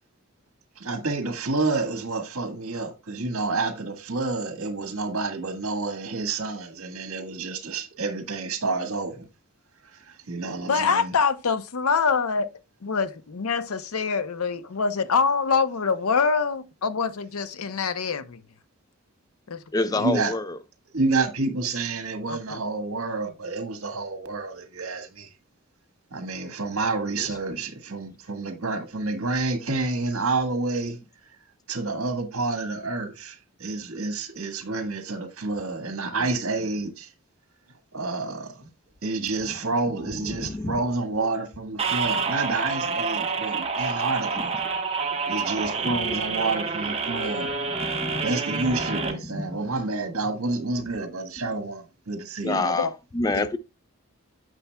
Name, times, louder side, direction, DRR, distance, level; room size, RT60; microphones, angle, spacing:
voice 1, 0.8-9.2 9.8-11.1 20.0-20.3 20.9-25.3 26.1-31.0 31.7-37.1 37.9-38.7 39.0-44.5 45.3-47.5 48.2-52.7, right 3 dB, 70° right, 1.6 m, -29 dB
voice 2, 10.7-12.5 12.8-18.4 19.5-19.6 22.3-22.6 52.5-52.9 53.3-53.5, left 5 dB, 75° left, 0.7 m, -25 dB
voice 3, 19.7-20.6 27.2-27.3 39.8-40.8 42.2-42.3 44.4-44.8 45.3-46.2 47.7-49.6 51.4-51.5 52.4-53.6, left 2 dB, 15° left, 0.3 m, -30 dB
sound 1, 41.8-49.1, right 4 dB, 30° right, 1.2 m, -28 dB
9.8 x 6.9 x 2.2 m
head